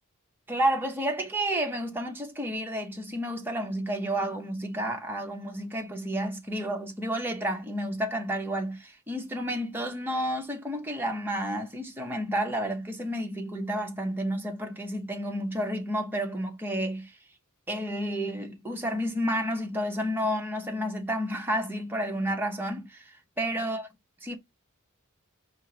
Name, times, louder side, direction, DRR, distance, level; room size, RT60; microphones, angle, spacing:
voice 1, 0.5-17.1 17.7-23.9 24.2-24.4, equal, 10° right, 0.7 m, -31 dB
4.5 x 2.5 x 2.9 m
head